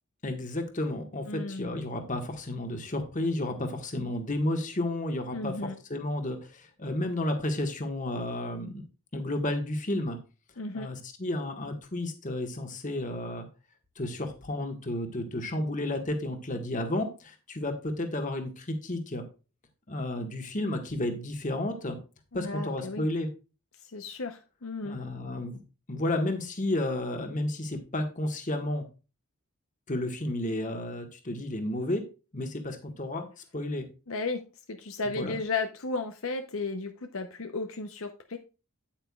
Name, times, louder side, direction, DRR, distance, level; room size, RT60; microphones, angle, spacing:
voice 1, 0.2-8.8 9.1-10.2 10.7-13.5 14.0-19.2 19.9-22.0 22.3-23.3 24.8-25.6 25.9-28.8 29.9-32.0 32.3-33.3 33.5-33.9 35.2-35.3, left 1 dB, 35° left, 6 dB, 1.4 m, -32 dB
voice 2, 1.3-1.7 5.3-5.7 10.6-10.9 22.3-23.1 23.8-25.0 34.1-34.4 34.7-38.4, left 3 dB, 70° left, 7 dB, 0.8 m, -34 dB
9.0 x 8.8 x 2.3 m, 0.32 s
head